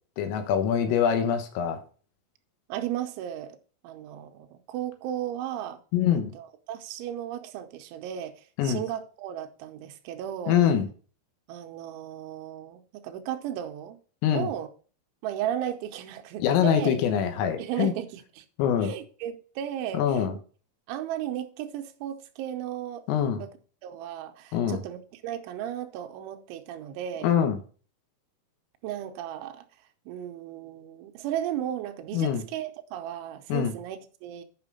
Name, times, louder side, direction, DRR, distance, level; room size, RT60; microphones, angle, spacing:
voice 1, 0.2-1.8 5.9-6.3 8.6-8.8 10.5-10.9 14.2-14.5 16.4-17.9 18.6-18.9 19.9-20.4 23.1-23.4 24.5-24.8 27.2-27.6 32.1-32.4 33.5-33.7, left 9 dB, 80° left, 3.7 m, -24 dB
voice 2, 2.7-3.6 3.8-5.8 6.4-8.4 8.6-10.6 11.5-14.0 14.3-14.7 15.2-16.9 17.6-18.4 18.8-20.3 20.9-23.1 23.4-23.5 23.8-27.3 28.8-29.6 30.1-34.4, right 11 dB, 80° right, 2.9 m, -35 dB
8.9 x 6.0 x 5.5 m
omnidirectional pair, 6.0 m